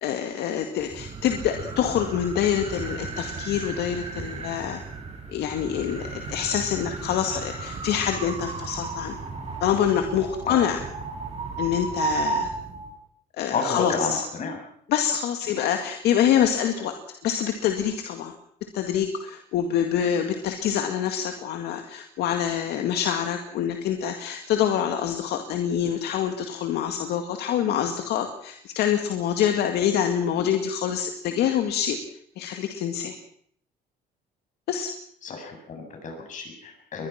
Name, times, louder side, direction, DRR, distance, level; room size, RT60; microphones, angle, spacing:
voice 1, 0.0-4.8 5.3-9.2 9.6-10.8 11.6-12.5 13.4-14.2 14.9-17.0 17.2-18.3 18.7-32.0 32.4-33.1 34.7-34.9, left 9 dB, 75° left, 5 dB, 2.1 m, -26 dB
sound 1, 0.8-12.9, right 4 dB, 40° right, 6.7 m, -34 dB
voice 2, 13.5-14.6 15.5-15.6 35.2-37.1, left 4 dB, 50° left, 3 dB, 7.9 m, -30 dB
22.5 x 20.5 x 5.9 m, 0.64 s
cardioid pair, 110°, 17 cm